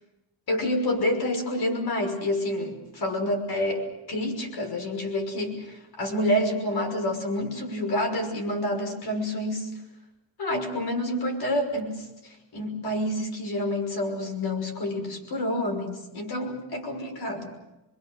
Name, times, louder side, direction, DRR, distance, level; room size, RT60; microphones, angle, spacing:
voice 1, 0.5-9.7 10.4-17.5, left 1 dB, 55° left, 3 dB, 5.9 m, -28 dB
27.0 x 23.5 x 6.6 m, 0.96 s
cardioid pair, 130°, 45 cm